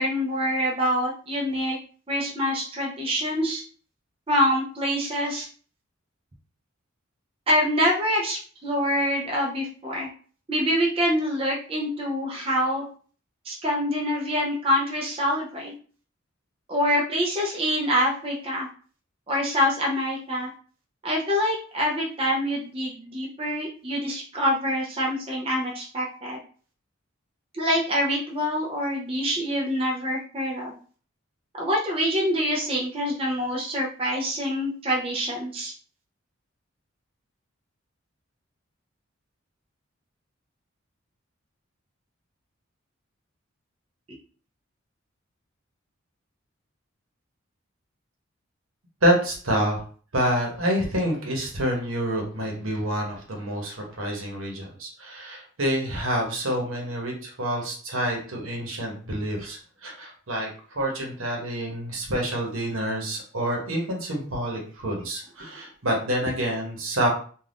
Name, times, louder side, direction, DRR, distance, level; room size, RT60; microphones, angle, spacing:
voice 1, 0.0-1.8 2.1-3.6 4.3-5.5 7.5-10.1 10.5-12.8 13.4-15.7 16.7-18.7 19.3-20.5 21.0-26.4 27.5-30.7 31.6-35.7, equal, 25° right, -3 dB, 0.5 m, -25 dB
voice 2, 49.0-49.8 50.1-67.1, equal, 80° right, 0 dB, 1.0 m, -27 dB
2.5 x 2.4 x 3.4 m, 0.42 s
head